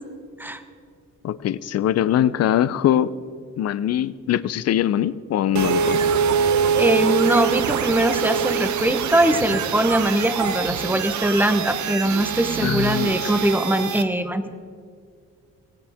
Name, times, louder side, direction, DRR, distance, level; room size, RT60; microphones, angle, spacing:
voice 1, 1.2-3.2 3.6-6.0 12.6-13.3, left 11 dB, 55° left, 17 dB, 0.6 m, -22 dB
sound 1, 5.5-14.0, right 7 dB, 70° right, 1.0 m, -24 dB
voice 2, 6.8-14.5, right 1 dB, 5° right, 9 dB, 1.1 m, -21 dB
17.0 x 16.5 x 3.6 m, 2.1 s
cardioid pair, 90°, 30 cm